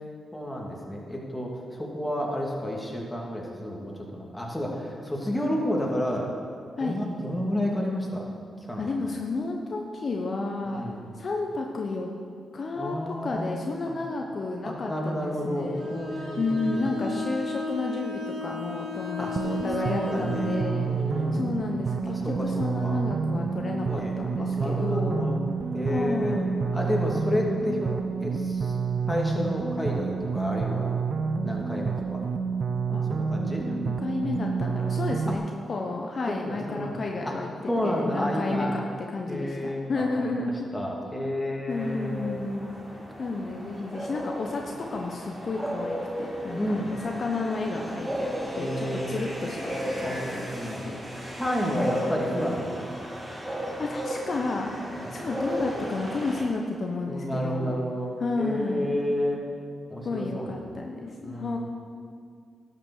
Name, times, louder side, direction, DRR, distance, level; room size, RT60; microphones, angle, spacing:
voice 1, 0.3-6.3 6.8-8.3 8.7-8.9 10.7-11.0 12.8-13.6 13.9-14.0 14.6-16.9 19.2-19.3 19.8-21.6 22.1-22.5 22.8-23.0 23.8-25.4 25.7-27.9 28.2-28.8 29.0-30.9 31.4-32.2 33.1-33.6 35.3-35.4 36.4-37.0 37.2-37.4 37.7-38.8 39.3-42.5 46.5-46.9 48.6-49.2 50.0-50.9 51.4-52.8 54.9-55.1 57.1-59.4 59.9-60.8 61.2-61.6, equal, 10° left, -2 dB, 2.6 m, -31 dB
voice 2, 8.8-10.8 11.2-12.1 12.5-15.9 16.2-20.9 21.3-25.3 25.9-26.6 32.9-33.1 33.6-35.4 35.7-37.5 37.8-38.8 39.1-40.7 41.7-42.7 43.2-46.8 47.0-51.0 51.6-52.5 53.5-57.7 58.2-58.9 60.0-61.6, left 3 dB, 55° left, 1 dB, 0.9 m, -31 dB
Bowed string instrument, 15.8-20.7, left 3 dB, 85° right, 1.7 m, -35 dB
sound 1, 19.4-35.4, right 5 dB, 60° right, 0.6 m, -29 dB
sound 2, 41.7-56.4, equal, 15° right, 3.1 m, -35 dB
12.0 x 6.6 x 6.5 m, 2.2 s
supercardioid pair, 50°, 0 cm